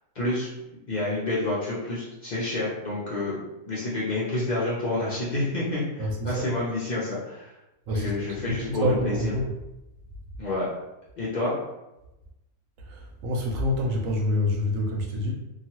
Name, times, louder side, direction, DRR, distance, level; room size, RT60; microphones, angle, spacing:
voice 1, 0.1-0.5 0.9-3.4 3.7-7.5 7.9-9.3 10.4-10.7 11.2-11.5, left 2 dB, 70° left, -7 dB, 0.4 m, -29 dB
voice 2, 6.0-6.4 7.9-8.1 8.5-9.5 12.9-15.3, left 1 dB, 70° right, 1 dB, 1.0 m, -27 dB
2.9 x 2.3 x 2.8 m, 0.96 s
omnidirectional pair, 1.5 m